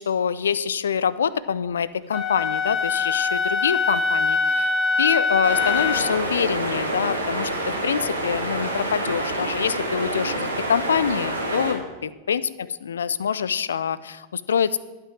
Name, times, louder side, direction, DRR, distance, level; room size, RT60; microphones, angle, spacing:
voice 1, 0.0-4.7 5.0-14.8, left 7 dB, 65° left, 18 dB, 0.4 m, -25 dB
Wind instrument woodwind instrument, 2.1-6.2, left 4 dB, 20° left, 1.6 m, -23 dB
sound 1, 5.4-11.7, right 1 dB, 85° right, 2.1 m, -27 dB
12.0 x 6.0 x 7.7 m, 1.2 s
figure-of-eight pair, 90°, 0 cm